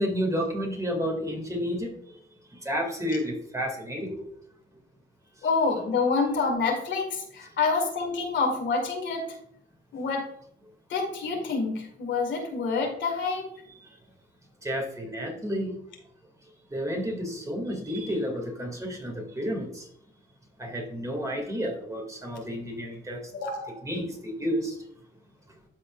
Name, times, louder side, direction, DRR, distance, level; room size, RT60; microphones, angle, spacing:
voice 1, 0.0-1.9 2.5-4.2 14.6-15.7 16.7-19.9 20.6-23.2 23.8-24.8, equal, 15° right, 0 dB, 2.3 m, -31 dB
voice 2, 5.4-9.3 9.9-10.3 10.9-13.5 23.3-23.7, left 4 dB, 70° left, 2 dB, 2.0 m, -27 dB
13.0 x 4.4 x 2.5 m, 0.68 s
cardioid pair, 90°, 20 cm